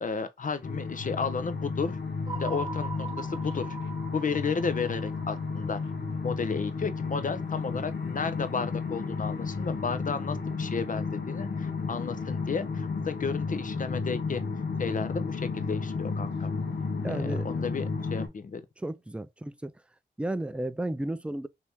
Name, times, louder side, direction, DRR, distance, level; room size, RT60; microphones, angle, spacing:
voice 1, 0.0-2.0 2.4-3.8 4.1-5.8 6.2-14.4 14.8-16.5 17.1-18.6, left 5 dB, 45° left, 0.6 m, -33 dB
sound 1, 0.6-18.3, left 4 dB, 70° left, 1.0 m, -33 dB
sound 2, 2.3-6.5, right 4 dB, 20° right, 1.1 m, -42 dB
voice 2, 17.0-17.7 18.8-19.7 20.2-21.5, right 1 dB, 5° right, 0.4 m, -33 dB
2.9 x 2.7 x 3.5 m
supercardioid pair, 40°, 19 cm